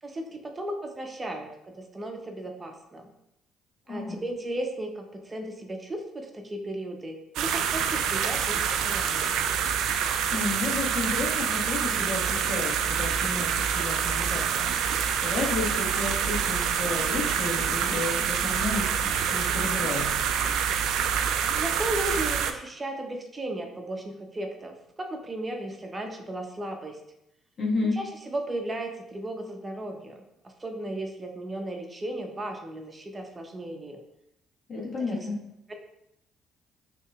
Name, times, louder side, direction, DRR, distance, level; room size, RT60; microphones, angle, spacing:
voice 1, 0.0-3.1 3.9-9.4 21.5-27.0 27.9-30.2 30.4-34.0 34.8-35.3 35.7-35.8, right 1 dB, 30° right, 3 dB, 0.7 m, -35 dB
sound 1, 7.4-22.5, right 8 dB, 75° right, 0.3 m, -26 dB
voice 2, 10.0-14.7 15.2-20.1 27.6-28.0 34.7-35.4, left 3 dB, 50° left, -4 dB, 1.5 m, -32 dB
6.2 x 2.9 x 2.4 m, 0.83 s
hypercardioid pair, 55°, 0 cm